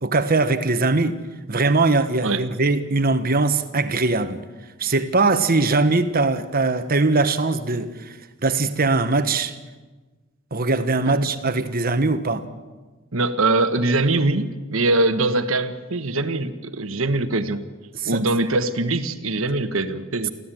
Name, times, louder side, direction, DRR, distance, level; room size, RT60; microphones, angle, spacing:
voice 1, 0.0-1.2 1.5-4.4 4.8-8.2 8.4-9.6 10.5-12.5 17.9-18.2, right 3 dB, 45° right, 1.4 m, -21 dB
voice 2, 13.1-17.6 18.0-20.3, right 2 dB, 70° right, 1.5 m, -22 dB
24.5 x 15.5 x 9.2 m
head